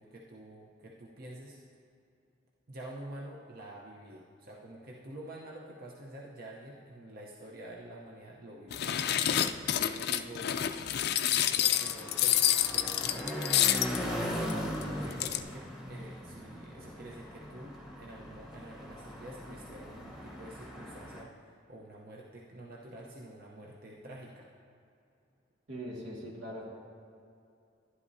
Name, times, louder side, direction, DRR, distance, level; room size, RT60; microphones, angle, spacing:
voice 1, 0.0-1.6 2.7-8.9 9.3-13.3 14.0-24.5, right 1 dB, 50° right, -3 dB, 0.8 m, -48 dB
sound 1, 8.7-14.0 14.5-14.6 14.8-14.9 15.1-15.4, left 11 dB, 60° left, 0.3 m, -28 dB
sound 2, 11.6-21.2, equal, ahead, 1.1 m, -39 dB
voice 2, 25.7-26.7, equal, 80° right, -3 dB, 2.0 m, -41 dB
11.5 x 11.0 x 2.7 m, 2.6 s
head